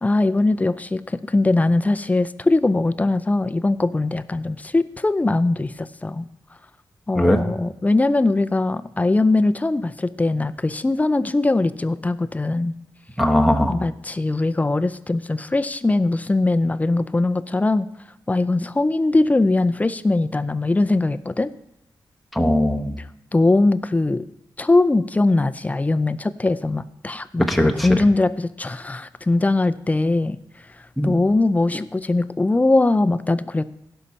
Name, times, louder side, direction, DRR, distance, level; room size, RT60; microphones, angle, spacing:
voice 1, 0.0-6.2 7.1-12.7 13.7-17.9 18.3-21.5 23.3-24.3 24.6-30.4 31.0-33.7, left 2 dB, 20° left, 13 dB, 0.4 m, -21 dB
voice 2, 13.2-13.7 22.3-23.0 27.5-27.9 31.0-31.2, left 1 dB, ahead, 1 dB, 1.0 m, -19 dB
16.5 x 5.7 x 4.1 m, 0.79 s
wide cardioid pair, 105°, 8 cm